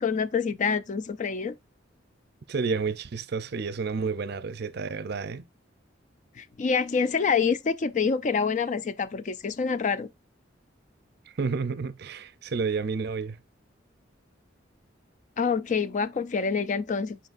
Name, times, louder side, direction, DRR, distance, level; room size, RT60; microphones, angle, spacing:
voice 1, 0.0-1.6 6.4-10.1 15.4-17.2, left 5 dB, 40° left, 0.4 m, -26 dB
voice 2, 2.5-5.5 11.3-13.4, right 5 dB, 55° right, 0.5 m, -30 dB
8.0 x 5.1 x 2.5 m
head